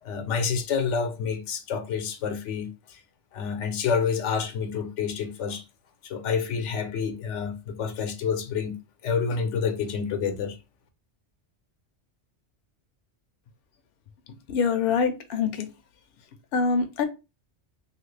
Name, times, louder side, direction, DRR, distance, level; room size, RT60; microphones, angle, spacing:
voice 1, 0.0-3.0 3.3-5.6 6.0-8.8 9.0-10.6, left 6 dB, 85° left, 1.0 m, -28 dB
voice 2, 14.5-15.7 16.5-17.0, left 5 dB, 65° left, 0.7 m, -24 dB
3.0 x 2.4 x 3.2 m
omnidirectional pair, 1.2 m